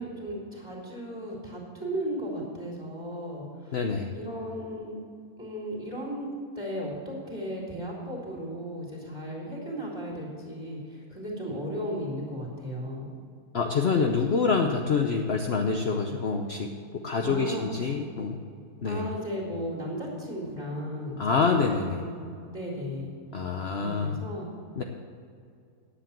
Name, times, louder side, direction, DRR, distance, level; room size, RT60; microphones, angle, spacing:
voice 1, 0.0-3.8 4.1-5.0 5.4-13.1 17.2-17.6 18.9-23.1 23.8-24.5, equal, 15° right, -4 dB, 3.4 m, -35 dB
voice 2, 3.7-4.1 13.5-18.4 18.8-19.0 21.2-22.0 23.3-24.2 24.8-24.9, left 4 dB, 50° left, 2 dB, 0.9 m, -26 dB
10.5 x 8.3 x 7.3 m, 2.3 s
omnidirectional pair, 1.6 m